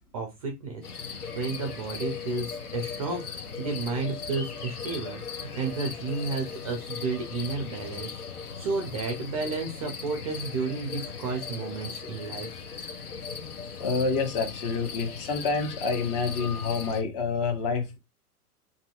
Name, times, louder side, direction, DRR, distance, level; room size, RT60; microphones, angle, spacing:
voice 1, 0.1-8.2 8.6-12.5, right 4 dB, 25° right, 0.4 m, -32 dB
sound 1, 0.8-17.0, left 6 dB, 75° left, 0.8 m, -38 dB
voice 2, 13.8-18.0, left 4 dB, 30° left, 0.7 m, -28 dB
2.6 x 2.6 x 2.4 m
figure-of-eight pair, 105°, 46 cm